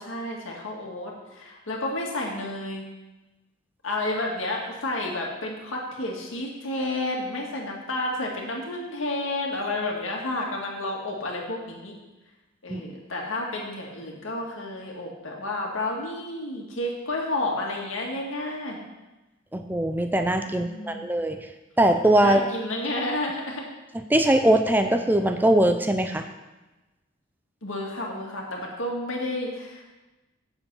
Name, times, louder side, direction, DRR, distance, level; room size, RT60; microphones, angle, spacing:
voice 1, 0.0-2.9 3.8-11.9 12.6-18.9 20.5-21.1 22.2-23.6 27.6-29.8, left 2 dB, 85° left, -1 dB, 1.9 m, -31 dB
voice 2, 19.5-21.4 21.8-22.4 24.1-26.2, right 1 dB, 10° right, 6 dB, 0.4 m, -21 dB
7.6 x 7.1 x 5.5 m, 1.1 s
head